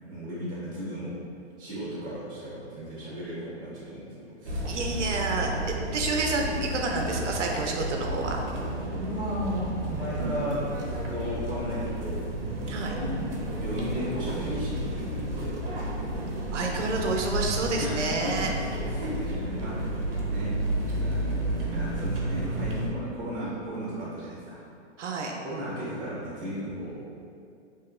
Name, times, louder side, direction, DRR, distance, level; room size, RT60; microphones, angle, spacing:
voice 1, 0.0-1.1 1.6-4.1 4.4-4.7 8.5-12.2 13.0-15.5 17.7-20.0 20.3-20.5 20.9-24.6 25.4-27.0, equal, 10° right, -9 dB, 1.1 m, -35 dB
sound 1, 4.4-22.9, right 1 dB, 50° right, 0.8 m, -31 dB
voice 2, 4.7-8.4 12.7-12.9 16.5-18.5 25.0-25.4, right 3 dB, 85° right, 1 dB, 0.7 m, -29 dB
4.7 x 3.0 x 2.4 m, 2.4 s
hypercardioid pair, 160°, 35 cm